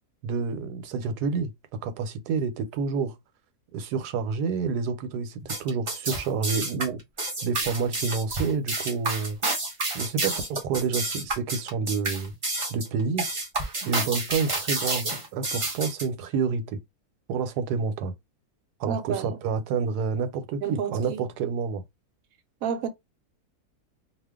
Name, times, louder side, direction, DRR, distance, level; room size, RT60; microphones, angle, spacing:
voice 1, 0.2-1.5 1.8-3.1 3.7-7.0 7.4-9.4 9.9-12.3 12.7-13.3 13.9-16.8 17.3-18.1 18.8-21.8, right 5 dB, 85° right, 1.2 m, -28 dB
sound 1, 5.4-16.1, right 2 dB, 30° right, 0.6 m, -29 dB
voice 2, 18.9-19.4 20.6-21.2 22.6-22.9, right 7 dB, 70° right, 1.0 m, -31 dB
2.5 x 2.4 x 3.5 m
omnidirectional pair, 1.7 m